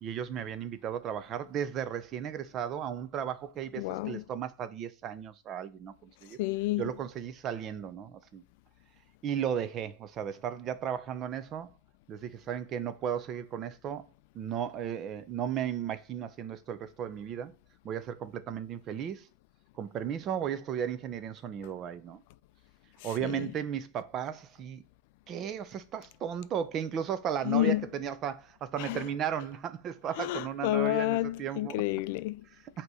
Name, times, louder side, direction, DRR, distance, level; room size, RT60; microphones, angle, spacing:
voice 1, 0.0-6.4 6.8-8.4 9.2-11.7 12.1-14.1 14.3-17.5 17.8-19.3 19.7-22.2 23.0-24.8 25.3-31.8 32.5-32.8, right 9 dB, 30° right, 0.6 m, -35 dB
voice 2, 3.8-4.2 6.4-6.8 23.2-23.5 27.5-27.8 28.8-29.0 30.2-32.4, left 17 dB, 60° left, 0.3 m, -30 dB
7.9 x 2.9 x 4.8 m
supercardioid pair, 150°, 0 cm